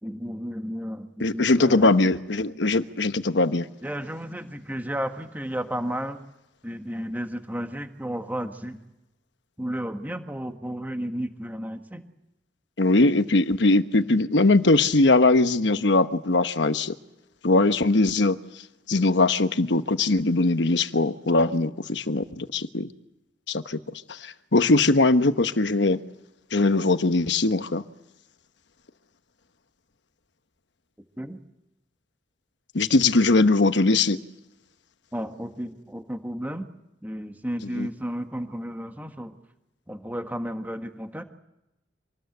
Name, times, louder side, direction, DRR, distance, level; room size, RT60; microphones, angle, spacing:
voice 1, 0.0-1.9 3.8-6.2 6.6-8.8 9.6-12.0 31.2-31.4 35.1-36.7 37.0-39.4 39.9-41.2, equal, 10° right, 1.7 m, -33 dB
voice 2, 1.2-3.7 12.8-17.0 17.4-18.4 18.9-22.9 23.5-26.0 26.5-27.8 32.7-34.2 37.7-37.9, left 2 dB, 70° left, 1.1 m, -21 dB
26.0 x 20.0 x 8.0 m
head